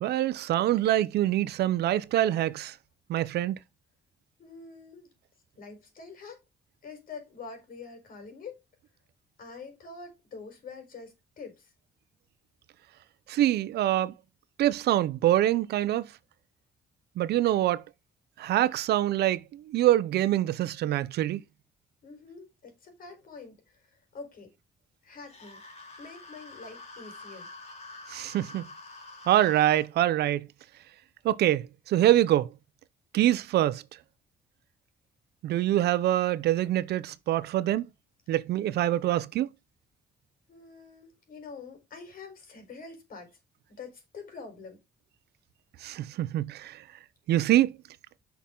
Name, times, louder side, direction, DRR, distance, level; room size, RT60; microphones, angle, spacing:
voice 1, 0.0-2.7 3.1-3.6 13.3-14.1 14.6-16.1 17.2-17.8 18.4-21.4 28.1-28.6 29.3-30.5 31.2-32.5 33.1-33.8 35.4-37.8 38.3-39.5 45.8-46.8 47.3-47.7, right 13 dB, 80° right, 0.7 m, -25 dB
voice 2, 4.4-5.1 5.6-6.4 6.8-8.6 9.4-11.7 22.0-23.6 24.1-24.5 25.0-25.6 26.0-27.5 40.5-43.4 43.7-44.8, left 4 dB, 60° left, 4.5 m, -45 dB
sound 1, 25.2-29.9, left 3 dB, 40° left, 3.0 m, -47 dB
8.4 x 5.9 x 3.9 m
cardioid pair, 100°, 17 cm